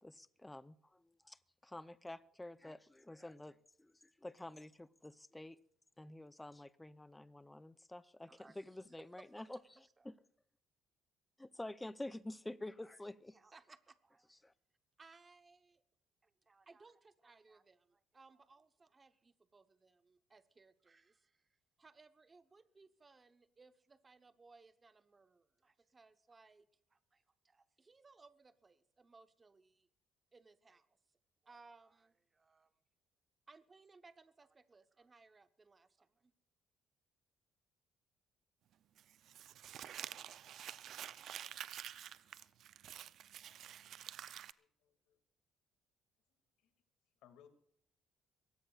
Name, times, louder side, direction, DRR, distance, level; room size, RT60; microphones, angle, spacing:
voice 1, 0.0-3.9 4.2-5.6 6.0-9.6 10.1-10.2 11.4-13.4 14.4-14.5, left 1 dB, 10° left, 0.6 m, -49 dB
voice 2, 8.3-8.6 8.9-9.5 10.0-10.1 13.3-14.3 15.0-15.8 16.2-29.9 30.3-31.0 31.4-32.7 33.5-36.3, right 4 dB, 25° right, 0.9 m, -64 dB
Crumpling crinkling, 39.0-44.5, right 10 dB, 60° right, 0.5 m, -49 dB
voice 3, 44.6-45.2 46.3-46.7 47.2-47.5, left 9 dB, 85° left, 2.1 m, -66 dB
22.5 x 17.5 x 2.4 m
cardioid pair, 120°, 0 cm